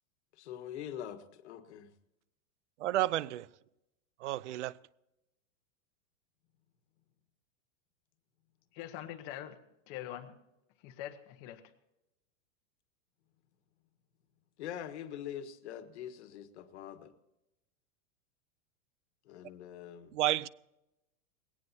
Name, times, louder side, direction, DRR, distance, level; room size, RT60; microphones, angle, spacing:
voice 1, 0.4-1.9 14.6-17.1 19.3-20.1, left 10 dB, 55° left, 1.6 m, -44 dB
voice 2, 2.8-3.5 4.2-4.7 20.1-20.5, right 15 dB, 60° right, 0.6 m, -31 dB
voice 3, 8.7-9.6 9.9-10.3 10.8-11.6, left 12 dB, 25° left, 1.0 m, -43 dB
20.5 x 17.5 x 2.8 m
supercardioid pair, 175°, 41 cm